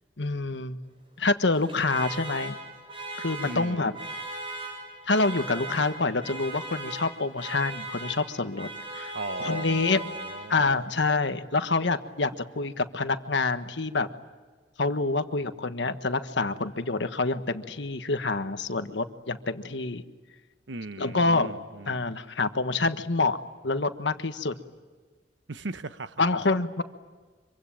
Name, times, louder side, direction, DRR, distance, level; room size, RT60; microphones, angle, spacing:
voice 1, 0.2-0.8 1.2-2.6 3.2-3.9 5.1-8.7 8.9-9.1 9.4-10.1 10.5-14.1 14.8-20.0 21.0-21.5 21.9-23.4 23.6-24.5 26.2-26.8, left 3 dB, 75° left, 1.4 m, -27 dB
Alarm, 1.5-10.9, right 2 dB, 30° right, 6.1 m, -39 dB
voice 2, 3.4-3.9 9.1-10.9 20.7-22.1 25.5-26.2, right 3 dB, 85° right, 1.0 m, -38 dB
25.5 x 24.0 x 9.0 m
head